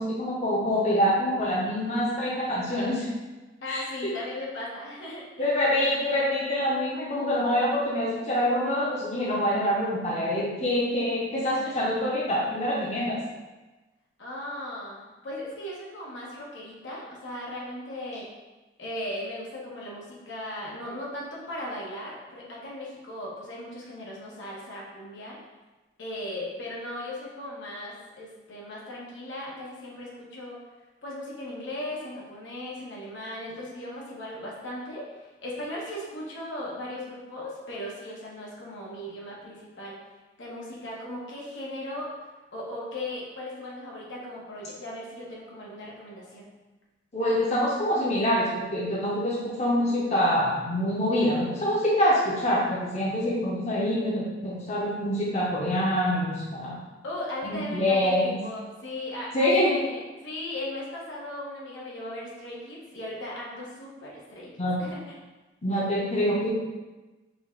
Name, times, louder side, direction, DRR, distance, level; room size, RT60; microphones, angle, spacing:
voice 1, 0.0-3.1 3.7-4.1 5.4-13.2 47.1-56.8 57.5-58.4 59.3-59.7 64.6-64.8 65.6-66.5, equal, 35° left, -5 dB, 0.7 m, -25 dB
voice 2, 3.6-5.4 14.2-18.3 18.8-25.4 26.0-30.6 31.0-40.0 40.4-42.1 42.5-46.5 57.0-64.5 64.8-65.2, left 1 dB, 85° left, -5 dB, 1.1 m, -37 dB
5.0 x 2.4 x 3.7 m, 1.2 s
head